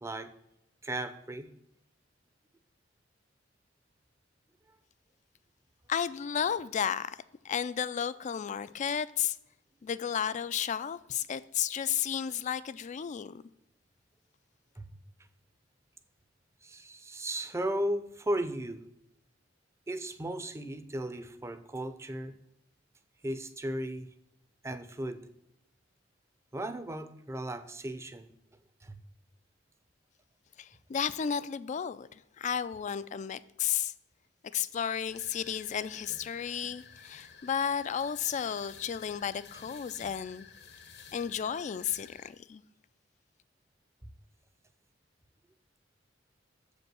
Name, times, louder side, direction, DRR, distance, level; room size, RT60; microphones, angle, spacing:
voice 1, 0.0-0.3 0.8-1.5 14.8-14.9 16.6-18.8 19.9-22.3 23.2-24.1 24.6-25.3 26.5-28.3 28.8-29.0, right 1 dB, 15° right, 0.6 m, -35 dB
voice 2, 5.9-7.2 7.4-9.4 9.8-13.4 30.6-32.1 32.4-33.9 34.5-40.5 41.1-42.6, left 8 dB, 40° left, 0.3 m, -33 dB
sound 1, 35.1-42.3, left 6 dB, 65° left, 1.0 m, -53 dB
7.2 x 5.2 x 6.2 m
head